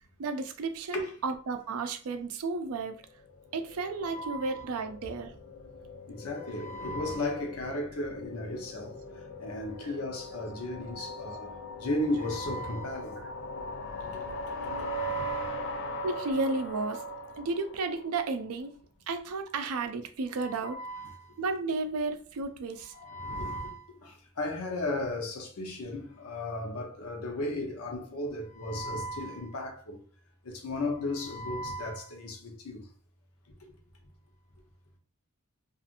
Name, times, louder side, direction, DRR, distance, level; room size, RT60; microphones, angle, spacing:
voice 1, 0.2-3.0 3.5-5.4 9.8-10.0 11.5-11.7 16.0-17.0 17.4-18.7 19.1-20.8 21.4-22.9, right 3 dB, 80° right, 0.4 m, -33 dB
sound 1, 3.0-18.3, equal, 55° left, 0.4 m, -40 dB
voice 2, 4.0-4.6 6.1-9.0 9.4-13.2 14.0-14.1 14.5-15.6 20.4-21.3 22.9-30.0 30.4-32.8 33.6-33.7, left 1 dB, 85° left, 0.7 m, -35 dB
2.7 x 2.5 x 2.5 m
head